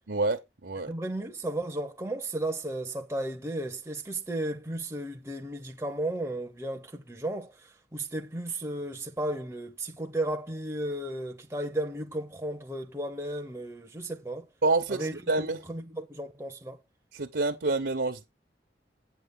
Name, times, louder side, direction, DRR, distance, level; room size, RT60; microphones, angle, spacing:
voice 1, 0.1-0.9 14.6-15.6 17.1-18.3, right 3 dB, 70° right, 0.9 m, -28 dB
voice 2, 0.9-14.5 14.9-15.2 15.6-16.8, right 1 dB, 15° right, 0.8 m, -34 dB
9.0 x 6.7 x 3.8 m
head